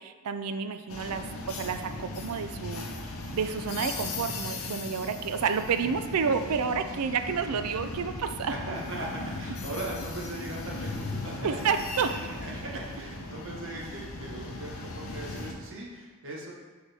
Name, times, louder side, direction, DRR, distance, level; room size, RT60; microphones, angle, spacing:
voice 1, 0.0-2.9 3.3-8.5 11.4-12.1, right 6 dB, 85° right, 9 dB, 0.4 m, -30 dB
sound 1, 0.9-15.5, left 2 dB, 65° left, 0.7 m, -38 dB
voice 2, 8.5-16.5, right 1 dB, 60° right, -3 dB, 1.2 m, -39 dB
6.6 x 4.8 x 3.4 m, 1.4 s
head